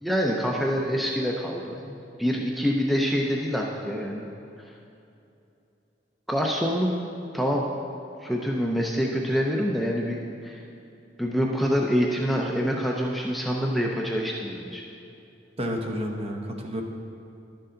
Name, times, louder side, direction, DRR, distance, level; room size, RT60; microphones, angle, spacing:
voice 1, 0.0-4.3 6.3-6.9 7.3-7.7 8.2-10.6 11.2-14.8, equal, ahead, -1 dB, 0.5 m, -26 dB
voice 2, 15.6-16.8, equal, 35° right, 2 dB, 0.9 m, -30 dB
11.5 x 6.7 x 3.8 m, 2.8 s
head